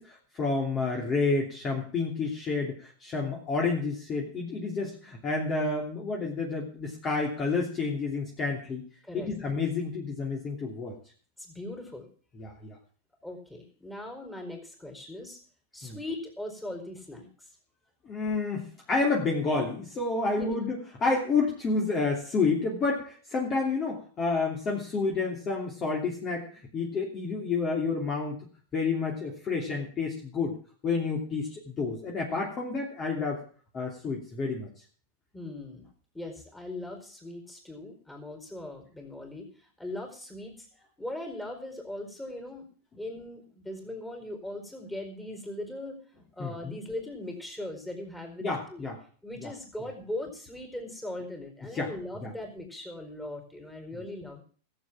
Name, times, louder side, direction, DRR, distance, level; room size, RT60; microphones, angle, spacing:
voice 1, 0.0-8.9 9.1-10.9 12.4-12.8 15.8-16.0 18.0-20.8 21.0-26.5 26.7-28.4 28.7-30.6 30.8-33.4 33.7-34.7 46.4-46.8 48.4-49.0 49.4-49.5 51.7-51.9 52.2-52.3, left 4 dB, 30° left, -1 dB, 3.0 m, -29 dB
voice 2, 11.4-12.1 13.2-15.4 15.7-17.5 20.4-20.6 35.3-35.8 36.1-40.7 41.0-42.7 43.0-46.0 46.3-48.9 49.2-54.4, left 1 dB, 5° left, 2 dB, 4.6 m, -39 dB
14.5 x 7.7 x 7.4 m, 0.43 s
hypercardioid pair, 115°, 0 cm